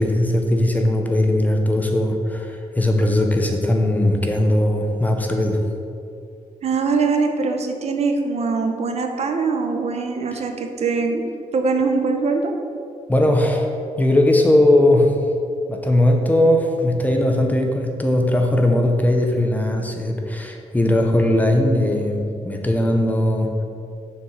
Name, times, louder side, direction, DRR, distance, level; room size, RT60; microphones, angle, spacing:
voice 1, 0.0-5.6 10.3-10.4 13.1-13.7 14.0-15.2 15.7-23.6, left 1 dB, 10° left, 2 dB, 0.7 m, -19 dB
voice 2, 6.6-12.5, right 4 dB, 55° right, 5 dB, 0.7 m, -22 dB
6.7 x 4.6 x 6.3 m, 2.5 s
wide cardioid pair, 150°, 14 cm